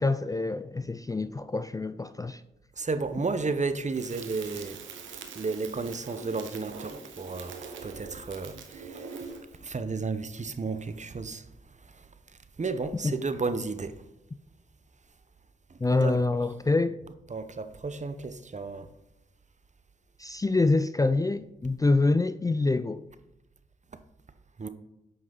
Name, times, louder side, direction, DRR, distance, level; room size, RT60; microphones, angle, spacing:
voice 1, 0.0-2.4 13.0-13.2 15.8-17.0 20.2-23.0, left 3 dB, 20° left, 0.4 m, -26 dB
voice 2, 2.8-4.8 5.3-9.2 9.6-11.4 12.6-14.0 15.9-16.2 17.3-18.9 24.6-24.7, right 4 dB, 40° right, 0.8 m, -32 dB
Crackle, 3.9-9.6, right 5 dB, 90° right, 0.8 m, -43 dB
7.9 x 5.5 x 3.9 m
supercardioid pair, 40°, 19 cm